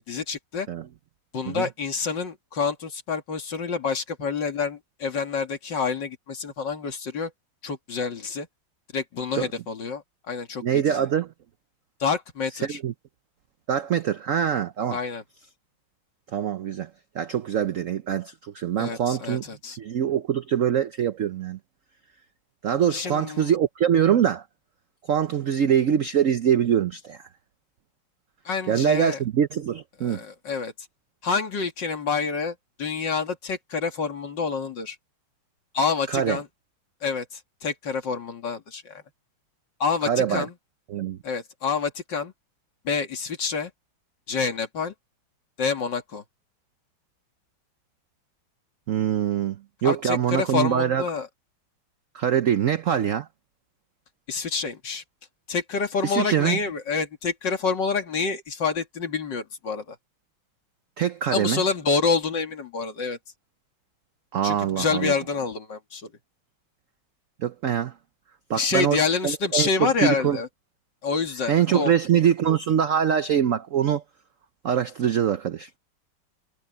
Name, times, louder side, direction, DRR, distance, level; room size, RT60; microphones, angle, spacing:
voice 1, 0.1-0.7 1.3-7.3 7.6-8.5 8.9-11.1 12.0-12.8 14.9-15.2 18.8-19.8 22.9-23.5 28.4-29.2 30.0-30.7 31.2-35.0 35.7-36.5 37.0-39.0 39.8-40.5 41.2-42.3 42.8-43.7 44.3-44.9 45.6-46.2 49.8-51.3 54.3-55.0 55.5-60.0 61.3-63.2 64.4-66.1 68.5-70.5 71.0-71.9, left 5 dB, 60° left, 2.8 m, -27 dB
voice 2, 10.6-11.3 12.6-12.9 13.7-15.0 16.3-16.9 17.1-19.4 19.8-21.6 22.6-24.5 25.1-27.3 28.7-30.2 36.1-36.4 40.1-40.5 40.9-41.2 48.9-51.0 52.1-53.3 56.0-56.6 61.0-61.6 64.3-65.1 67.4-67.9 68.5-69.0 69.2-70.4 71.5-74.0 74.6-75.7, right 9 dB, 80° right, 0.7 m, -23 dB
omnidirectional pair, 2.3 m